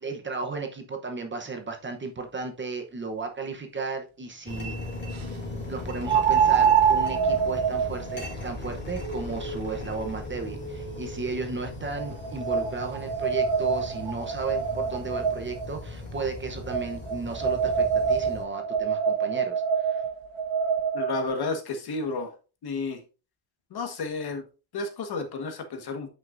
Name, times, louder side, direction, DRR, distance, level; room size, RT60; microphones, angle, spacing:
voice 1, 0.0-4.8 5.5-20.0, right 4 dB, 25° right, 4 dB, 0.9 m, -34 dB
sound 1, 3.5-3.6 6.0-11.2 12.0-15.7 16.7-21.3, right 7 dB, 90° right, 1.1 m, -26 dB
sound 2, 4.5-18.4, left 2 dB, 25° left, 2.4 m, -38 dB
voice 2, 20.9-22.3 22.6-23.0 23.7-24.4 24.7-26.1, left 4 dB, 55° left, 6 dB, 1.5 m, -31 dB
9.3 x 5.6 x 2.6 m, 0.33 s
cardioid pair, 165°, 45 cm